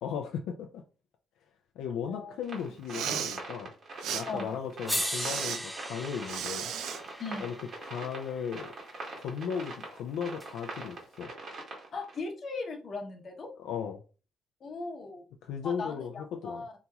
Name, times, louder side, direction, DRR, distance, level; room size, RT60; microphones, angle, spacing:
voice 1, 0.0-0.8 1.8-3.7 4.1-6.7 7.4-7.5 7.8-8.7 9.1-11.3 13.6-14.0 15.4-16.7, left 7 dB, 85° left, 0.3 m, -36 dB
sound 1, 2.4-12.2, right 3 dB, 55° right, 1.2 m, -43 dB
Respiratory sounds, 2.8-3.4 4.0-4.2 5.1-5.6 6.3-7.0, right 9 dB, 85° right, 0.3 m, -34 dB
voice 2, 4.3-4.6 7.2-7.6 11.9-13.5 14.6-15.2 15.6-16.7, left 3 dB, 50° left, 0.8 m, -38 dB
sound 2, 4.3-4.4 4.9-9.1 10.4-10.5, equal, ahead, 0.4 m, -38 dB
2.9 x 2.8 x 2.3 m
cardioid pair, 90°, 0 cm